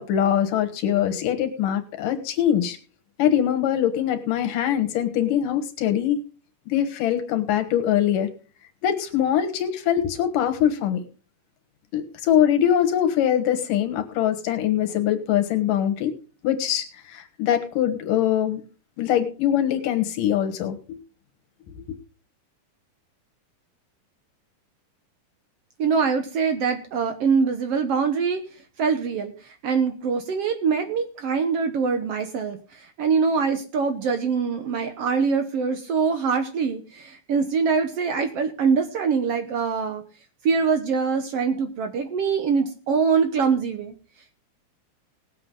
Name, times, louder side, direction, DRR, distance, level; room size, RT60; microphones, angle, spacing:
voice 1, 0.0-2.8 3.2-6.2 6.7-8.3 8.8-11.0 11.9-16.1 16.4-18.6 19.0-21.0, left 10 dB, 85° left, 7 dB, 3.0 m, -23 dB
voice 2, 25.8-28.4 28.8-40.0 40.4-43.9, right 5 dB, 60° right, 8 dB, 1.7 m, -24 dB
19.0 x 7.8 x 3.8 m, 0.37 s
omnidirectional pair, 3.7 m